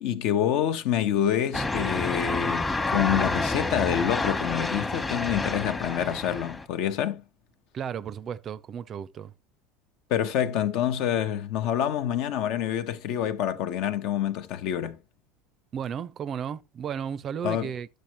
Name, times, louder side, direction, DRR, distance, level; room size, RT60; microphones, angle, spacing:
voice 1, 0.0-7.2 10.1-15.0 17.4-17.7, left 10 dB, 60° left, 0.8 m, -27 dB
sound 1, 1.5-6.7, left 2 dB, 15° left, 1.0 m, -29 dB
voice 2, 7.7-9.3 15.7-17.9, right 8 dB, 40° right, 0.5 m, -34 dB
11.0 x 6.5 x 3.0 m
figure-of-eight pair, 70°, 0 cm